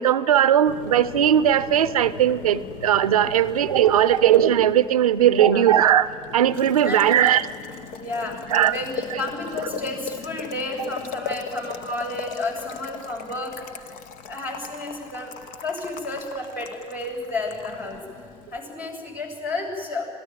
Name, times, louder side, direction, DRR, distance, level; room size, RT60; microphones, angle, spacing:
voice 1, 0.0-6.1 6.3-7.5 8.5-8.7 9.1-9.2 11.3-11.4, right 10 dB, 90° right, 16 dB, 0.5 m, -18 dB
Boiling, 0.7-18.6, left 6 dB, 75° left, 0.9 m, -38 dB
voice 2, 8.0-8.4 8.7-13.9 14.2-15.3 15.6-18.0 18.5-20.1, left 2 dB, 60° left, -1 dB, 7.1 m, -31 dB
26.0 x 18.0 x 9.2 m, 2.5 s
figure-of-eight pair, 40°, 18 cm